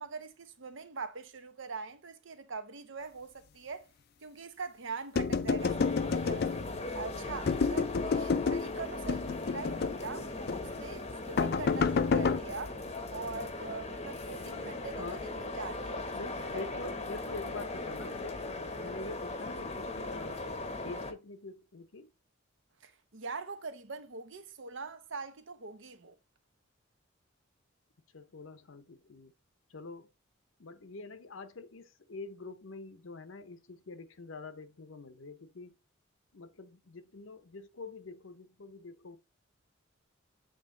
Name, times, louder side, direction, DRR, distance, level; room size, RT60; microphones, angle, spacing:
voice 1, 0.0-3.9 4.2-6.6 6.9-12.8 13.1-16.8 22.8-26.2, right 4 dB, 65° right, 0.9 m, -43 dB
sound 1, 5.2-6.9 7.5-8.7 9.1-10.0 10.5-10.7 11.4-12.4, left 5 dB, 50° left, 0.4 m, -29 dB
sound 2, 5.6-21.1, left 2 dB, 30° left, 0.8 m, -39 dB
voice 2, 16.1-20.4 20.8-22.1 28.1-29.3 29.7-30.1 30.6-35.8 36.3-39.2, left 3 dB, 75° left, 0.8 m, -45 dB
7.8 x 3.3 x 3.8 m
head